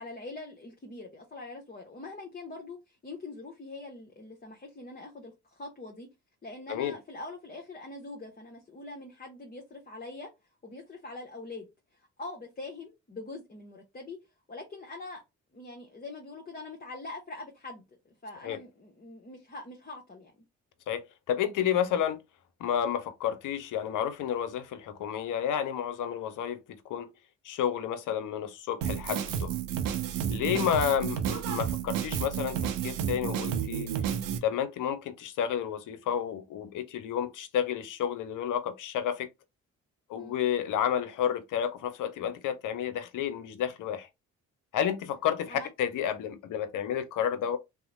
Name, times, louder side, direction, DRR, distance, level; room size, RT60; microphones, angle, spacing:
voice 1, 0.0-6.1 6.4-10.3 10.6-11.7 12.2-14.2 14.5-15.2 15.5-20.3 30.5-30.7 40.1-40.4 45.5-45.7, left 2 dB, 25° left, 0.9 m, -43 dB
voice 2, 20.9-22.2 22.6-27.1 27.4-29.5 30.3-32.6 32.8-33.9 34.4-39.3 40.1-44.1 44.7-47.6, left 9 dB, 60° left, 0.7 m, -31 dB
Drum kit, 28.8-34.4, right 9 dB, 65° right, 0.6 m, -31 dB
2.8 x 2.0 x 3.7 m
hypercardioid pair, 45°, 36 cm